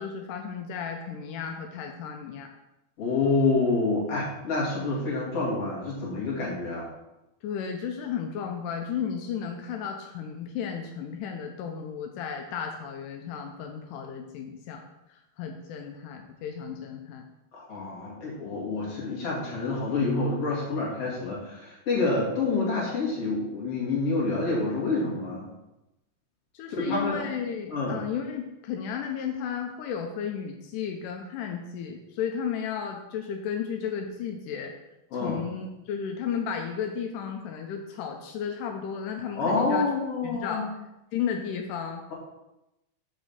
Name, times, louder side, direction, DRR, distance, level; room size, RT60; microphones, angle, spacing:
voice 1, 0.0-2.5 7.4-14.9 15.4-17.3 26.5-34.7 35.2-39.9 40.2-40.7 41.1-42.0, left 7 dB, 85° left, 3 dB, 1.9 m, -33 dB
voice 2, 3.0-6.9 17.5-25.5 26.7-27.2 27.7-28.0 35.1-35.4 39.4-40.6, left 3 dB, 45° left, -5 dB, 2.8 m, -27 dB
6.4 x 4.8 x 6.7 m, 0.94 s
omnidirectional pair, 4.5 m